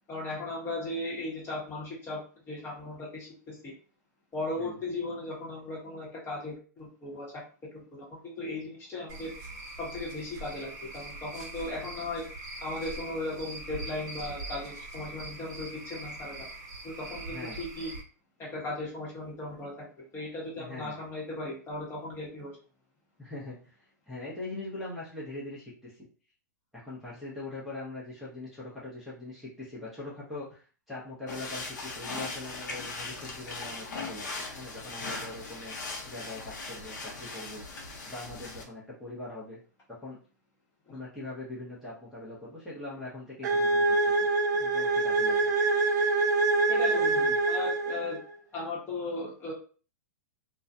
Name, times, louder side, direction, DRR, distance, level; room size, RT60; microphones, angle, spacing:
voice 1, 0.1-3.7 4.3-7.4 7.7-9.3 9.8-12.3 12.6-16.5 16.8-17.9 18.4-19.9 20.1-22.6 40.9-41.0 46.7-48.2 48.5-49.5, left 2 dB, 25° left, -4 dB, 1.1 m, -37 dB
Cricket / Frog, 9.1-18.0, right 2 dB, 40° right, 1.2 m, -42 dB
voice 2, 17.3-17.6 20.6-21.0 23.2-26.1 26.7-37.7 38.1-39.6 40.0-40.2 40.9-44.3 44.5-45.4 47.2-47.4, left 2 dB, ahead, -10 dB, 0.8 m, -42 dB
sound 1, 31.3-38.6, left 3 dB, 75° left, 0.7 m, -39 dB
sound 2, 43.4-48.3, right 3 dB, 70° right, 0.5 m, -25 dB
2.3 x 2.2 x 2.6 m, 0.39 s
hypercardioid pair, 120°, 10 cm